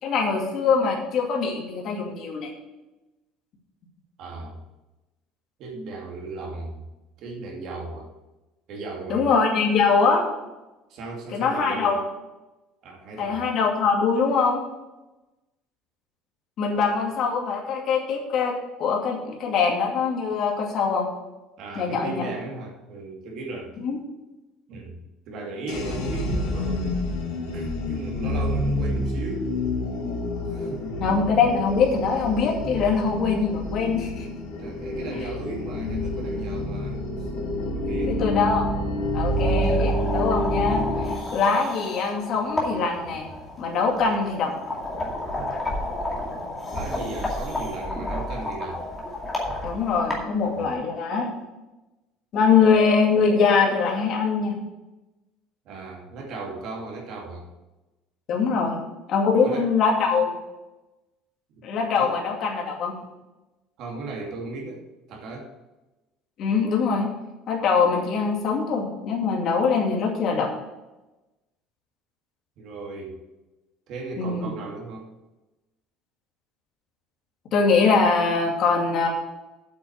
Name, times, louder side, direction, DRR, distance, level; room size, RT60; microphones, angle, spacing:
voice 1, 0.0-2.5 9.1-10.3 11.3-12.0 13.2-14.6 16.6-21.1 21.8-22.2 23.8-24.0 31.0-34.3 38.1-38.6 39.1-43.3 43.6-44.5 49.6-51.3 52.3-54.6 58.3-58.8 59.1-60.4 61.6-62.9 66.4-67.1 67.5-70.5 74.2-74.5 77.5-79.1, left 5 dB, 45° left, 0 dB, 2.4 m, -23 dB
voice 2, 4.2-4.6 5.6-6.9 7.2-8.1 8.7-9.3 10.9-12.0 12.8-13.5 16.7-17.0 21.6-23.8 24.7-27.0 27.5-29.5 30.4-31.0 34.6-37.0 37.7-38.2 46.6-48.8 55.7-57.5 59.3-59.7 61.5-61.7 62.0-62.1 63.8-65.5 72.6-73.2 73.9-75.1, right 3 dB, 50° right, 0 dB, 2.5 m, -36 dB
sound 1, 25.7-41.1, left 1 dB, 70° left, 3.2 m, -28 dB
sound 2, 39.3-50.7, left 2 dB, 10° left, 2.2 m, -32 dB
8.2 x 6.4 x 8.1 m, 1.0 s
cardioid pair, 160°, 0 cm